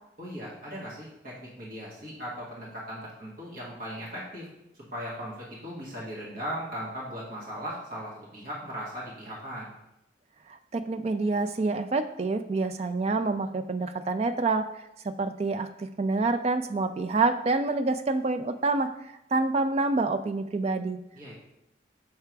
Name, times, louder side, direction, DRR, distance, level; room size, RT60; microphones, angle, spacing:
voice 1, 0.2-4.5 4.9-9.7 21.1-21.3, equal, 50° right, -6 dB, 1.7 m, -38 dB
voice 2, 10.7-14.7 15.0-18.9 19.3-21.0, right 3 dB, 35° right, 9 dB, 0.3 m, -27 dB
6.7 x 3.5 x 4.6 m, 0.86 s
head